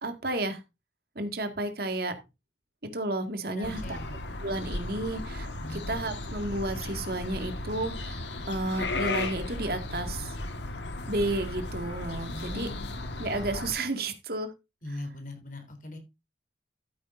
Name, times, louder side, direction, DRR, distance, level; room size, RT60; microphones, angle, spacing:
voice 1, 0.0-0.6 1.2-2.1 2.9-4.0 4.4-10.4 11.1-12.7 13.2-14.5, right 2 dB, 55° right, 7 dB, 2.0 m, -32 dB
voice 2, 3.5-4.2 5.6-6.1 12.3-13.0 14.8-16.0, left 1 dB, 45° left, 6 dB, 3.7 m, -41 dB
sound 1, 3.6-13.7, left 2 dB, 70° left, 1.6 m, -35 dB
14.0 x 8.7 x 2.6 m, 0.25 s
head